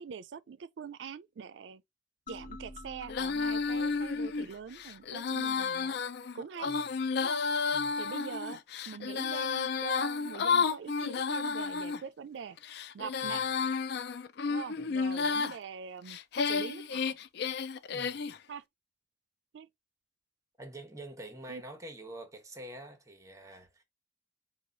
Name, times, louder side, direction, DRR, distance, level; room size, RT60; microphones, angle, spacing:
voice 1, 0.0-1.8 2.3-5.9 6.3-6.7 7.2-7.4 8.0-12.6 12.9-13.4 14.5-16.2 16.5-17.2 18.5-18.6 19.5-19.7 21.5-21.6, right 6 dB, 85° right, 0.4 m, -43 dB
sound 1, 2.3-5.3, left 2 dB, 45° left, 1.0 m, -50 dB
Female singing, 3.1-12.0 12.6-15.6 16.1-18.4, left 5 dB, 65° left, 0.4 m, -32 dB
voice 2, 6.7-7.0 7.7-7.9 13.2-13.6 14.8-15.0 17.9-18.3 20.6-23.8, right 1 dB, 20° right, 1.1 m, -47 dB
4.7 x 2.3 x 3.9 m
head